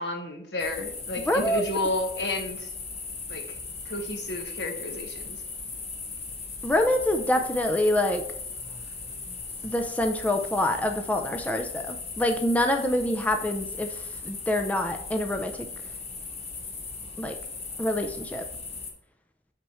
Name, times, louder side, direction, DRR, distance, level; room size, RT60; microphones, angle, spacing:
voice 1, 0.0-2.7 3.3-3.4 3.8-5.4, left 2 dB, 70° left, 4 dB, 1.3 m, -31 dB
sound 1, 0.6-18.9, left 4 dB, 35° left, 1.3 m, -38 dB
voice 2, 1.3-1.6 6.6-8.2 9.6-15.7 17.2-17.3 17.8-18.4, left 1 dB, 10° left, 5 dB, 0.5 m, -26 dB
6.0 x 6.0 x 3.1 m, 0.75 s
head